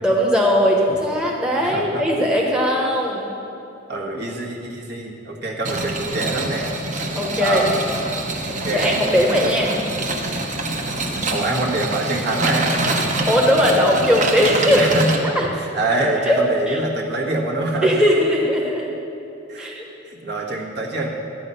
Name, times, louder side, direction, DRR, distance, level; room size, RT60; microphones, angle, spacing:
voice 1, 0.0-3.3 7.1-7.6 8.7-9.8 13.3-14.9 15.2-15.5 16.3-16.4 16.7-16.8 17.8-18.9 19.6-19.8, equal, 5° right, -2 dB, 1.0 m, -19 dB
voice 2, 1.5-2.0 3.9-6.7 7.4-7.8 8.5-8.9 11.3-12.8 14.7-18.0 19.5-19.7 20.1-21.1, right 2 dB, 55° right, -2 dB, 1.6 m, -25 dB
sound 1, 5.6-15.2, right 2 dB, 40° right, 1.1 m, -25 dB
12.5 x 8.9 x 5.5 m, 2.8 s
head